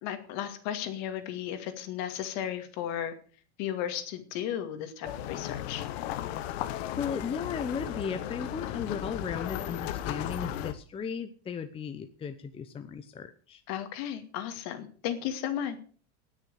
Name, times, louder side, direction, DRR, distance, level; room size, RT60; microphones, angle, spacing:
voice 1, 0.0-3.1 3.6-5.8 13.7-15.8, left 10 dB, 55° left, 8 dB, 2.4 m, -34 dB
sound 1, 5.0-10.7, left 12 dB, 70° left, 1.3 m, -35 dB
voice 2, 7.0-13.6, left 6 dB, 15° left, 8 dB, 0.8 m, -36 dB
18.5 x 6.7 x 6.5 m, 0.42 s
supercardioid pair, 140°, 32 cm